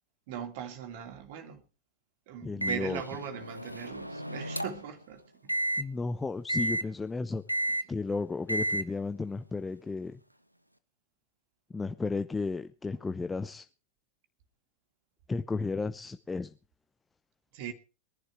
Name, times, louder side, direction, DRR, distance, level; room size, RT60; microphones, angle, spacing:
voice 1, 0.3-1.6 2.3-5.5 7.7-7.8 17.5-17.7, right 8 dB, 50° right, 2.6 m, -40 dB
voice 2, 2.4-3.0 5.8-7.4 7.9-10.2 11.7-13.6 15.3-16.5, left 4 dB, 10° left, 0.8 m, -33 dB
Microwave oven, 2.6-4.9 5.5-5.8 6.5-6.8 7.5-7.8 8.5-8.8, right 1 dB, 90° right, 1.2 m, -32 dB
22.5 x 11.5 x 4.6 m
figure-of-eight pair, 90°, 0 cm